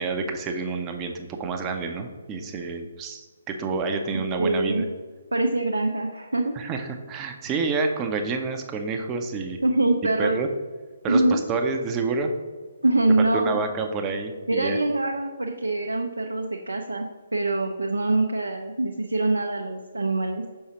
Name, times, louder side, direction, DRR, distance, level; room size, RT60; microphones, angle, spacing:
voice 1, 0.0-4.8 6.6-9.6 10.2-10.5 11.0-12.3 13.2-14.8, right 4 dB, 20° right, 4 dB, 0.6 m, -28 dB
voice 2, 4.4-4.8 5.3-6.5 9.6-10.4 11.1-11.4 12.8-13.6 14.5-17.1 17.3-20.4, right 2 dB, 75° right, 2 dB, 0.6 m, -24 dB
6.4 x 5.5 x 2.9 m, 1.5 s
figure-of-eight pair, 135°, 0 cm